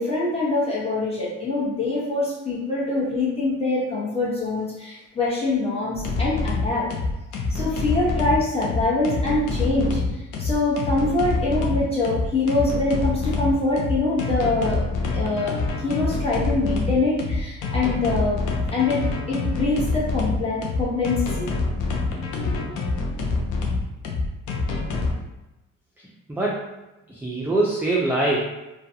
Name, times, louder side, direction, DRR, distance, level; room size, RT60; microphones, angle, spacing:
voice 1, 0.0-6.9 7.5-14.8 15.1-15.6 15.8-18.4 18.7-21.5 22.4-22.7, left 2 dB, 20° left, -7 dB, 1.0 m, -24 dB
sound 1, 5.9-25.1, left 3 dB, 85° left, 0.6 m, -26 dB
voice 2, 26.0-26.6 27.1-28.4, right 2 dB, 5° right, -4 dB, 0.4 m, -24 dB
2.4 x 2.2 x 2.7 m, 0.99 s
cardioid pair, 90°, 30 cm